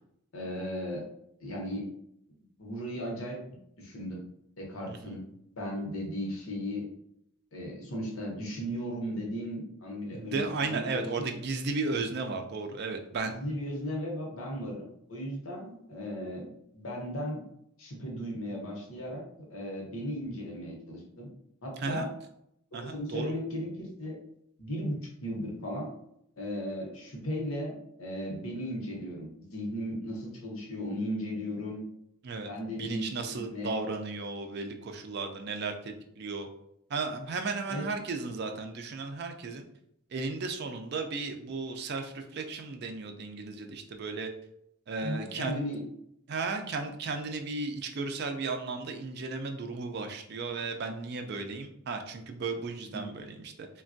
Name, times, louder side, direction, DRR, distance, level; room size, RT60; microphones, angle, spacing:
voice 1, 0.3-1.1 1.4-1.9 2.4-4.2 4.6-5.3 5.5-6.9 7.5-11.3 13.2-14.8 15.1-16.5 16.7-17.5 17.8-19.2 19.5-21.3 21.6-22.1 22.7-24.2 24.6-25.9 26.4-31.8 32.4-33.8 37.7-37.9 45.0-45.8 52.9-53.1, equal, 80° left, -1 dB, 0.9 m, -36 dB
voice 2, 10.1-13.3 21.8-22.1 22.7-23.3 32.2-36.5 36.9-39.6 40.1-44.3 44.9-45.7 46.3-53.7, right 3 dB, 50° right, 5 dB, 0.4 m, -35 dB
3.3 x 2.2 x 2.5 m, 0.76 s
head